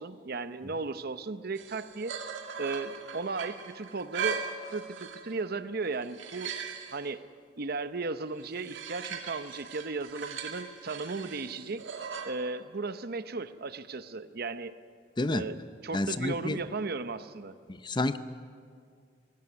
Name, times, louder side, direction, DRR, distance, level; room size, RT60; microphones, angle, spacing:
voice 1, 0.0-2.1 2.6-4.4 4.7-6.6 6.9-7.2 7.6-11.8 12.2-14.7 15.3-17.6, right 3 dB, 55° right, 12 dB, 0.8 m, -35 dB
sound 1, 1.6-5.4 5.8-7.0 8.4-12.3, right 6 dB, 80° right, 2.1 m, -39 dB
voice 2, 15.9-16.6 17.7-18.2, left 2 dB, 25° left, 12 dB, 0.6 m, -29 dB
19.5 x 16.5 x 9.6 m, 2.2 s
head